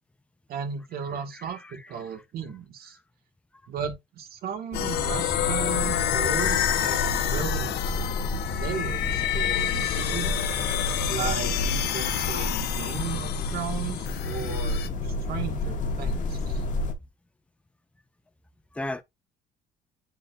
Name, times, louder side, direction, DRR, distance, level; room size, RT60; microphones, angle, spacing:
voice 1, 0.5-3.0 3.7-7.8 8.5-10.4 11.1-11.5 11.8-14.0 14.2-16.6, right 7 dB, 65° right, 1.8 m, -35 dB
voice 2, 1.1-2.1 8.9-9.0 14.2-14.6 18.7-19.0, left 1 dB, 5° left, 0.8 m, -38 dB
sound 1, 4.7-14.9, left 12 dB, 70° left, 1.0 m, -29 dB
sound 2, 4.7-16.9, left 2 dB, 50° left, 1.5 m, -30 dB
9.8 x 4.1 x 2.5 m
cardioid pair, 110°, 17 cm